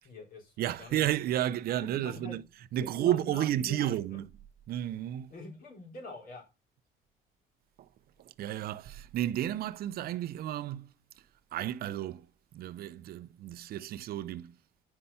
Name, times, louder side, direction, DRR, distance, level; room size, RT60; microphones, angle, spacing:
voice 1, 0.0-1.0 1.8-2.4 2.8-4.2 5.3-6.4, left 3 dB, 60° left, 4.1 m, -45 dB
voice 2, 0.6-2.4 2.7-4.3 4.7-5.3 7.8-7.9 8.2-10.9 11.5-12.3 12.5-14.6, right 12 dB, 65° right, 0.6 m, -32 dB
9.9 x 5.5 x 5.7 m
cardioid pair, 110°, 17 cm